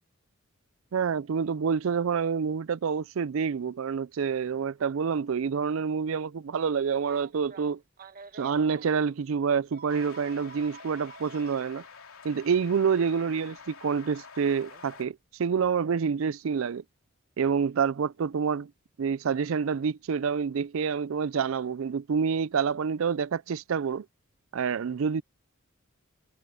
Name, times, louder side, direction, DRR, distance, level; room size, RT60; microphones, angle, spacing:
voice 1, 0.9-7.8 8.3-11.8 12.2-16.8 17.4-18.7 19.0-24.1 24.5-25.2, right 6 dB, 70° right, 0.4 m, -27 dB
Telephone, 7.0-8.9 9.7-11.6 13.0-13.1 14.6-14.8, right 5 dB, 45° right, 1.0 m, -48 dB
sound 1, 9.9-15.1, left 6 dB, 85° left, 3.1 m, -48 dB
head